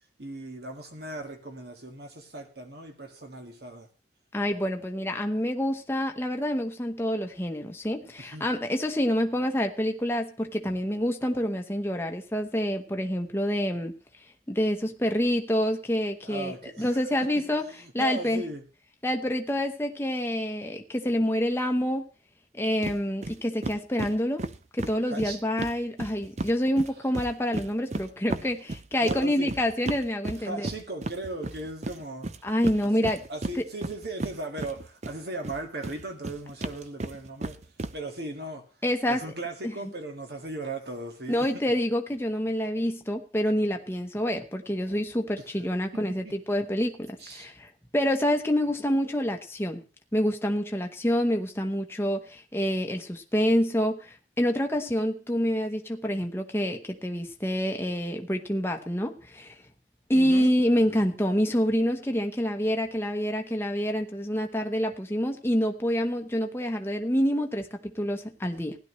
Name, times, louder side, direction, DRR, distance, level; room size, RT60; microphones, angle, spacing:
voice 1, 0.2-3.9 8.2-8.5 16.2-17.1 17.8-18.6 25.1-25.4 29.0-29.5 30.4-32.3 33.3-37.6 37.9-38.6 39.1-41.5 45.9-46.3 47.2-47.5 60.1-60.5, right 2 dB, 60° right, 1.8 m, -37 dB
voice 2, 4.3-13.9 14.5-17.7 17.9-18.4 19.0-22.1 22.5-24.5 24.8-30.7 32.4-33.2 33.5-33.6 38.8-39.2 39.6-39.9 41.3-49.8 50.1-59.5 60.1-68.8, equal, 15° left, 1.0 m, -27 dB
sound 1, 22.8-23.0 23.2-23.4 23.6-26.5 26.8-35.2 35.4-37.9, right 2 dB, 40° right, 0.6 m, -34 dB
16.0 x 11.0 x 3.1 m
head